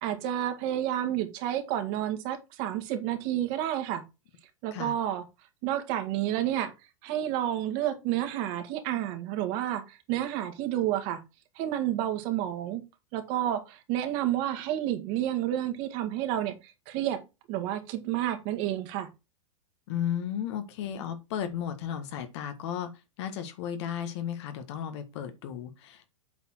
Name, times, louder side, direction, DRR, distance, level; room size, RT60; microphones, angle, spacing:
voice 1, 0.0-4.0 4.6-5.2 5.6-6.7 7.0-11.2 11.6-12.8 13.1-16.6 16.9-17.2 17.5-19.1, right 12 dB, 50° right, 2.0 m, -30 dB
voice 2, 19.9-22.9 23.2-26.1, left 9 dB, 60° left, 1.6 m, -34 dB
8.0 x 4.4 x 4.5 m
hypercardioid pair, 110°, 17 cm